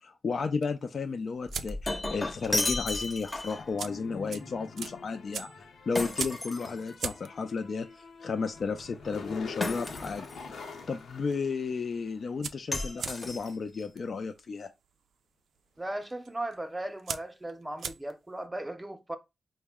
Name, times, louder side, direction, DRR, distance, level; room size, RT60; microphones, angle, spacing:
voice 1, 0.0-5.5 5.9-10.3 10.9-14.7, left 5 dB, 55° left, 0.4 m, -33 dB
sound 1, 0.6-2.1 2.4-2.7 2.9-3.0 3.6-10.5 10.8-11.3 11.6-11.7 11.9-18.4, right 7 dB, 85° right, 0.4 m, -41 dB
Shatter, 1.5-3.7 6.0-7.2 9.6-10.4 12.7-13.8, left 2 dB, 20° left, 0.7 m, -33 dB
sound 2, 3.5-12.2, left 4 dB, 80° left, 0.7 m, -45 dB
voice 2, 15.8-19.2, right 1 dB, 15° right, 0.6 m, -37 dB
4.6 x 2.1 x 3.5 m
cardioid pair, 95°, 0 cm